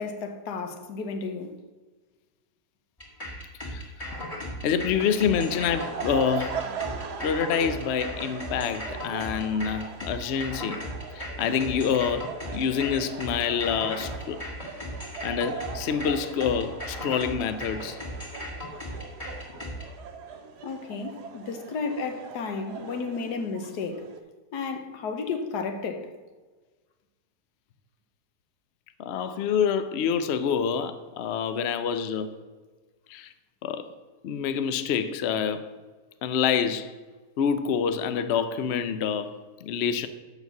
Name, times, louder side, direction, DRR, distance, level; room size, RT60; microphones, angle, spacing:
voice 1, 0.0-1.5 20.6-24.1 24.5-26.1, left 4 dB, 85° left, 1.5 m, -33 dB
sound 1, 3.0-19.8, equal, 20° left, 1.9 m, -37 dB
voice 2, 4.6-6.6 7.2-10.8 11.1-14.4 15.2-18.0 29.0-32.3 33.1-33.3 33.6-33.9 34.2-35.6 36.2-36.9 37.4-39.3 39.6-40.1, left 7 dB, 60° left, 0.7 m, -27 dB
sound 2, 4.8-24.2, right 6 dB, 90° right, 1.4 m, -39 dB
7.1 x 6.2 x 6.9 m
omnidirectional pair, 1.7 m